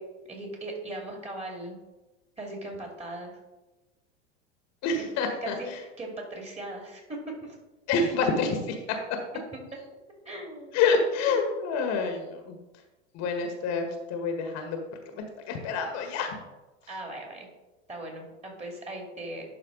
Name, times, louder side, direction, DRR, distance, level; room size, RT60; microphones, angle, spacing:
voice 1, 0.3-1.8 2.4-3.4 5.4-5.7 6.0-7.6 10.2-10.8 16.9-17.5 17.9-19.4, right 1 dB, 20° right, 1 dB, 2.4 m, -38 dB
voice 2, 4.8-5.8 7.9-8.8 10.7-12.6 13.1-14.8 15.1-16.4, left 4 dB, 45° left, 4 dB, 1.4 m, -27 dB
11.0 x 4.2 x 3.9 m, 1.1 s
hypercardioid pair, 90°, 36 cm